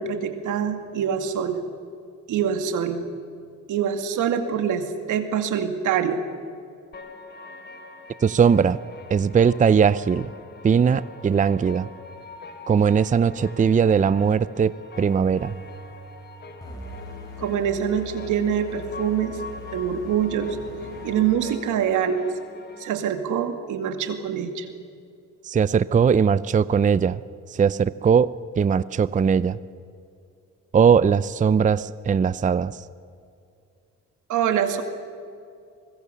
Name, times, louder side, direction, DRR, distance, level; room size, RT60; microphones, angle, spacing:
voice 1, 0.0-1.6 2.3-3.0 3.7-6.2 17.4-19.4 19.7-20.6 21.0-22.3 22.8-24.7 34.3-34.8, right 8 dB, 85° right, 8 dB, 2.3 m, -25 dB
sound 1, 6.9-22.9, left 3 dB, 35° left, 2.7 m, -43 dB
voice 2, 8.2-8.8 9.1-10.3 10.6-11.9 12.7-15.5 25.4-27.2 27.5-28.3 28.6-29.6 30.7-32.8, right 6 dB, 25° right, 17 dB, 0.5 m, -19 dB
sound 2, 14.9-21.3, left 2 dB, 10° left, 7.6 m, -41 dB
24.0 x 21.0 x 7.0 m, 2.5 s
cardioid pair, 90°, 30 cm